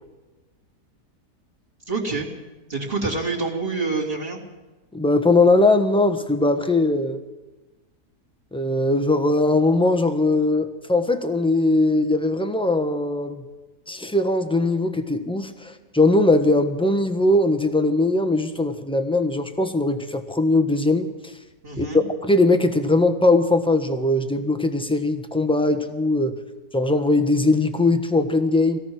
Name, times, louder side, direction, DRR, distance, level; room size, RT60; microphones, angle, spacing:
voice 1, 1.9-2.3 2.7-4.4 21.6-22.0, right 3 dB, 35° right, 0 dB, 3.0 m, -26 dB
voice 2, 4.9-7.2 8.5-13.4 13.9-21.3 21.8-21.9 22.2-26.4 26.7-28.8, left 2 dB, 5° left, 7 dB, 1.1 m, -20 dB
24.5 x 17.5 x 6.1 m, 1.2 s
omnidirectional pair, 1.7 m